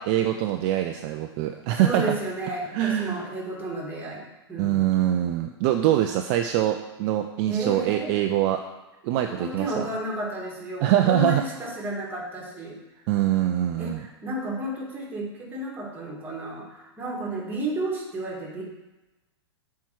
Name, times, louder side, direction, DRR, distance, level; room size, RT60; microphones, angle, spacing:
voice 1, 0.0-2.1 2.7-3.2 4.6-8.6 9.0-9.9 10.8-11.4 13.1-14.0, right 12 dB, 45° right, 5 dB, 0.6 m, -24 dB
voice 2, 1.7-5.0 7.5-8.1 9.4-12.8 13.8-18.6, right 1 dB, 15° right, -4 dB, 2.6 m, -32 dB
7.2 x 4.8 x 6.2 m, 1.1 s
hypercardioid pair, 115°, 14 cm